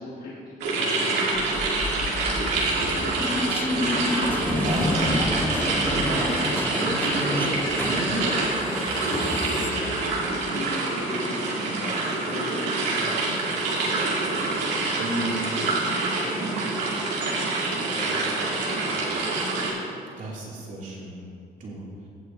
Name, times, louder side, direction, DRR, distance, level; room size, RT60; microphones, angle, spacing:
voice 1, 0.0-2.2 8.7-14.4 14.7-18.3 18.7-19.2, left 2 dB, 55° left, -8 dB, 2.2 m, -39 dB
sound 1, 0.6-19.7, right 3 dB, 85° right, 2.3 m, -26 dB
sound 2, 1.4-10.5, left 2 dB, 10° left, 0.4 m, -30 dB
voice 2, 2.7-3.6 4.3-8.2 15.0-15.4 20.2-21.3 21.6-21.8, right 1 dB, 50° right, -4 dB, 2.7 m, -32 dB
16.0 x 8.1 x 2.7 m, 2.3 s
cardioid pair, 110°, 17 cm